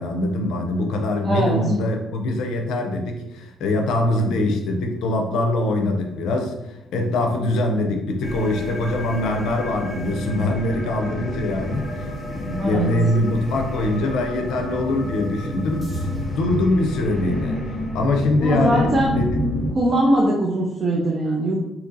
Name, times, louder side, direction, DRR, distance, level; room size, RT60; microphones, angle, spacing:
voice 1, 0.0-17.6 17.9-19.4, left 2 dB, 85° left, 4 dB, 0.5 m, -23 dB
voice 2, 1.2-1.6 12.6-12.9 18.4-19.1 19.7-21.7, right 1 dB, 35° right, -4 dB, 0.6 m, -21 dB
sound 1, 8.2-19.7, left 1 dB, 5° left, 1.1 m, -29 dB
2.8 x 2.6 x 3.8 m, 0.93 s
cardioid pair, 90°, 0 cm